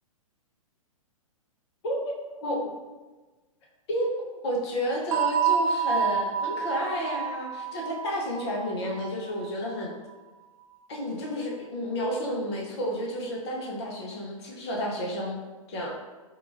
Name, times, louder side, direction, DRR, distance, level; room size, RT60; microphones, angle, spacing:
voice 1, 1.8-2.2 2.4-2.6 3.9-9.9 10.9-15.4 15.7-15.9, equal, 50° left, -2 dB, 0.8 m, -31 dB
sound 1, 5.1-9.7, right 7 dB, 45° right, 0.4 m, -28 dB
4.6 x 2.4 x 2.4 m, 1.2 s
figure-of-eight pair, 110°, 18 cm